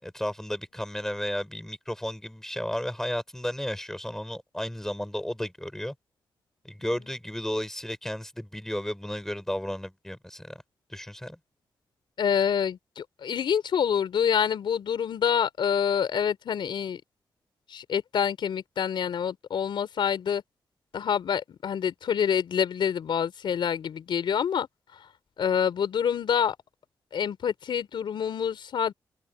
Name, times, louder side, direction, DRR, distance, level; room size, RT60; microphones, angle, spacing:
voice 1, 0.0-5.9 6.6-10.6 10.9-11.4, equal, 5° left, 7.5 m, -33 dB
voice 2, 12.2-17.0 17.7-20.4 20.9-24.7 25.4-26.6 27.1-28.9, left 8 dB, 80° left, 4.6 m, -27 dB
open air
cardioid pair, 65°, 8 cm